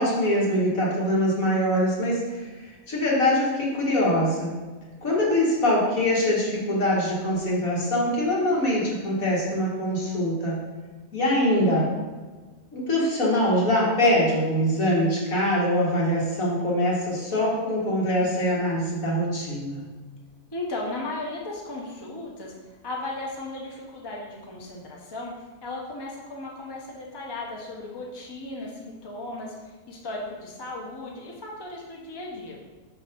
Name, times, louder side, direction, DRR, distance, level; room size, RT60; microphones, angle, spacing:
voice 1, 0.0-4.5 5.0-10.6 11.1-11.9 12.7-19.8, left 1 dB, 65° left, -5 dB, 2.2 m, -23 dB
voice 2, 20.5-22.5 22.8-32.6, left 2 dB, 20° left, -3 dB, 0.8 m, -36 dB
5.6 x 4.4 x 5.3 m, 1.3 s
omnidirectional pair, 1.6 m